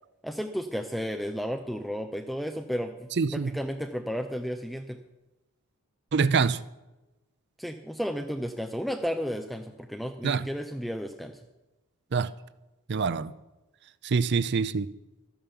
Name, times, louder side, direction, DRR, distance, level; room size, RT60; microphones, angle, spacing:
voice 1, 0.2-5.0 7.6-11.4, equal, ahead, 0.5 m, -33 dB
voice 2, 3.2-3.5 6.1-6.6 10.2-10.5 12.1-12.3 12.9-13.3 14.0-14.9, right 5 dB, 50° right, 0.5 m, -25 dB
13.0 x 9.0 x 7.0 m
head